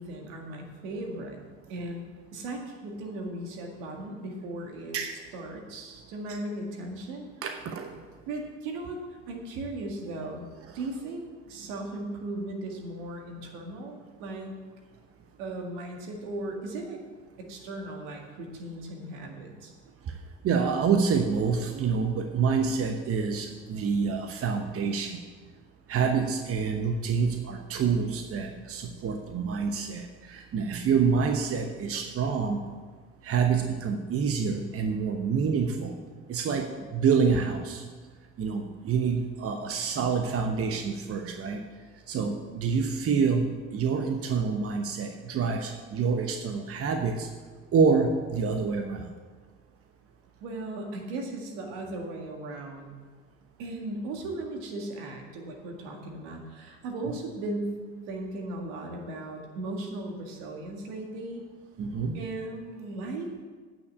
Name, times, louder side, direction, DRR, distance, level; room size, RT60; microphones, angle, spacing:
voice 1, 0.0-1.4 1.7-2.1 2.3-5.0 5.3-7.3 8.3-10.5 10.7-11.2 11.5-14.5 15.4-17.0 17.4-19.7 50.4-53.0 53.6-57.8 58.1-61.4 62.1-63.3, right 2 dB, 75° right, 1 dB, 2.0 m, -37 dB
voice 2, 7.4-8.0 10.7-10.8 20.4-25.2 25.9-32.6 33.2-35.9 36.3-37.8 38.4-41.6 42.1-47.3 47.7-49.1 61.8-62.2, right 5 dB, 45° right, 5 dB, 1.0 m, -27 dB
9.1 x 6.0 x 8.3 m, 1.5 s
hypercardioid pair, 70°, 33 cm